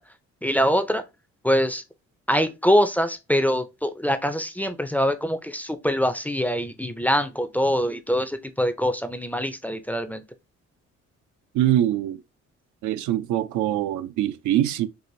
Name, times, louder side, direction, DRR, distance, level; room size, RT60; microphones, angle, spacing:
voice 1, 0.4-1.0 1.4-1.8 2.3-10.2, equal, 5° left, 0.4 m, -24 dB
voice 2, 11.5-12.2 12.8-14.9, right 12 dB, 75° right, 0.5 m, -23 dB
4.7 x 2.5 x 2.6 m
cardioid pair, 90°, 30 cm